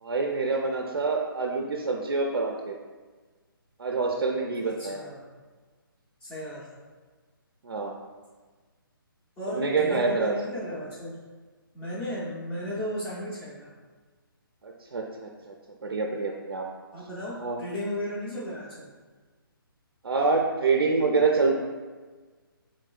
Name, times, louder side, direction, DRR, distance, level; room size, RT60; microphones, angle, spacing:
voice 1, 0.0-2.8 3.8-5.0 7.6-8.0 9.5-10.3 14.6-15.5 15.8-16.7 17.4-17.6 20.0-21.6, right 4 dB, 80° right, 1 dB, 0.4 m, -26 dB
voice 2, 4.6-5.2 6.2-6.8 9.4-11.2 11.7-13.7 16.9-18.9, left 1 dB, 5° left, -11 dB, 0.3 m, -35 dB
4.2 x 3.0 x 2.3 m, 1.4 s
figure-of-eight pair, 145°, 12 cm